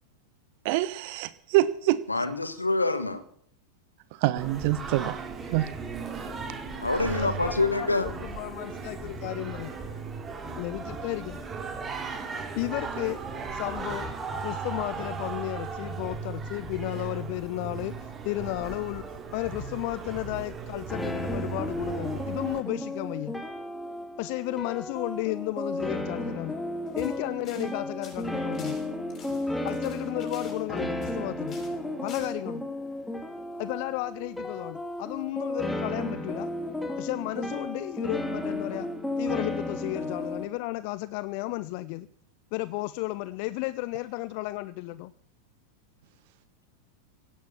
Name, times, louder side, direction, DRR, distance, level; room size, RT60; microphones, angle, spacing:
voice 1, 0.6-2.0 4.2-5.2 5.5-5.7, right 15 dB, 45° right, 17 dB, 0.8 m, -25 dB
voice 2, 2.1-3.2 6.8-8.1, left 3 dB, 80° left, 11 dB, 1.5 m, -26 dB
Singing, 4.4-22.6, right 4 dB, 20° right, 2.8 m, -37 dB
voice 3, 6.8-7.5 7.8-9.7 10.6-11.4 12.6-13.2 13.5-14.1 14.4-23.3 24.2-26.6 27.0-28.8 29.6-31.6 32.0-32.6 33.6-36.5 37.0-38.9 39.2-42.1 42.5-45.1, left 19 dB, 45° left, 17 dB, 0.5 m, -33 dB
sound 1, 20.9-40.5, left 1 dB, 5° left, 2.2 m, -33 dB
sound 2, 26.8-27.2 27.4-27.7 28.0-31.2 31.5-31.8 32.1-32.3, left 4 dB, 30° left, 6.6 m, -48 dB
17.0 x 10.0 x 7.3 m, 0.67 s
figure-of-eight pair, 90°, 0 cm